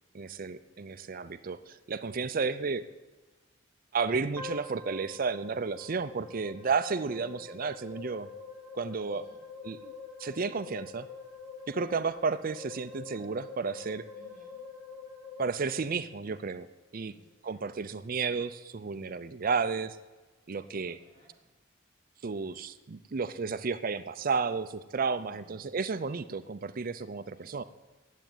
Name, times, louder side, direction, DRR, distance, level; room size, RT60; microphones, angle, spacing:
voice 1, 0.1-2.8 3.9-8.3 8.7-9.2 9.6-9.9 10.2-11.1 11.7-14.0 15.4-16.7 16.9-17.1 17.4-20.0 20.5-21.0 22.2-27.6, right 5 dB, 45° right, 12 dB, 0.5 m, -32 dB
sound 1, 4.4-16.6, left 5 dB, 5° left, 2.3 m, -46 dB
voice 2, 7.0-7.6 9.0-9.4 14.2-14.6 17.0-17.9 20.6-21.4 25.2-25.8 27.3-27.7, right 1 dB, 45° left, -1 dB, 3.9 m, -61 dB
10.0 x 8.3 x 9.1 m, 1.2 s
head